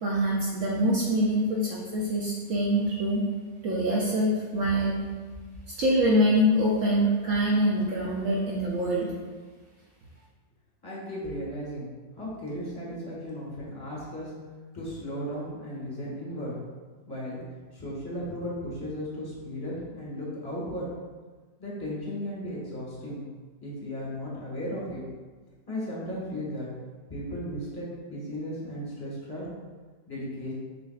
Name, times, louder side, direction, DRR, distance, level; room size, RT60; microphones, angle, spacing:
voice 1, 0.0-3.2 3.6-5.0 5.8-9.1, equal, 65° right, -5 dB, 0.8 m, -24 dB
voice 2, 10.8-11.9 12.2-14.3 14.7-16.5 17.1-17.4 17.7-20.9 21.6-23.2 23.6-25.0 25.7-26.7 27.1-29.4 30.1-30.5, equal, 15° left, -7 dB, 1.0 m, -35 dB
6.3 x 2.5 x 2.3 m, 1.4 s
omnidirectional pair, 1.8 m